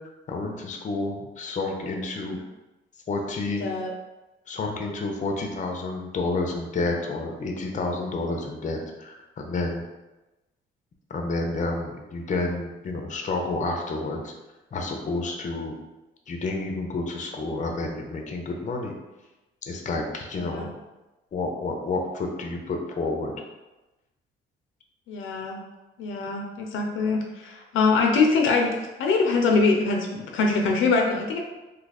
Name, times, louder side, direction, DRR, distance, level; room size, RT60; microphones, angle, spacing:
voice 1, 0.3-2.4 3.1-3.7 4.5-9.8 11.1-14.3 14.7-15.8 16.3-19.0 19.7-20.7 21.3-23.3, left 3 dB, 40° left, 2 dB, 0.6 m, -30 dB
voice 2, 25.1-25.6 26.0-28.7 29.0-31.4, left 4 dB, 80° left, 1 dB, 0.6 m, -23 dB
2.7 x 2.3 x 4.1 m, 1.1 s
cardioid pair, 90°, 20 cm